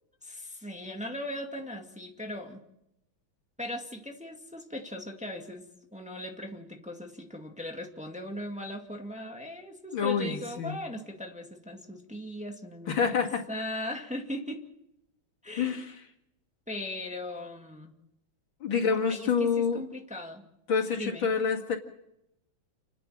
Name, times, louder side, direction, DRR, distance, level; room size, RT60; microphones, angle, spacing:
voice 1, 0.2-2.6 3.6-5.7 5.9-13.0 13.5-14.7 15.4-15.9 16.7-18.0 19.1-20.5 21.0-21.3, left 1 dB, 5° right, 3 dB, 2.0 m, -38 dB
voice 2, 9.9-10.8 12.9-13.4 15.6-15.9 18.6-19.8 20.7-21.8, left 6 dB, 75° left, 3 dB, 2.9 m, -27 dB
30.0 x 10.5 x 8.7 m, 0.81 s
omnidirectional pair, 2.2 m